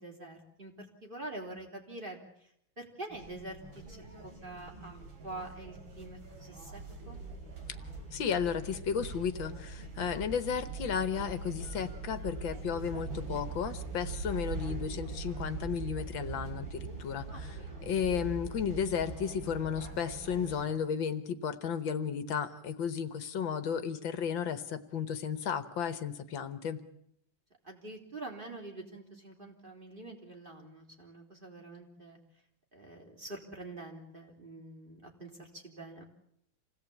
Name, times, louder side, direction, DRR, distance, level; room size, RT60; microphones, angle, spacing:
voice 1, 0.0-2.2 2.8-3.6 3.9-4.0 4.2-5.0 5.2-7.2 17.3-17.9 27.6-32.2 32.7-36.0, right 2 dB, 25° right, 2 dB, 3.6 m, -46 dB
sound 1, 3.1-20.7, right 4 dB, 80° right, 4.3 m, -42 dB
voice 2, 8.1-26.8, left 7 dB, 75° left, 11 dB, 1.9 m, -34 dB
27.0 x 17.5 x 8.5 m, 0.74 s
omnidirectional pair, 2.1 m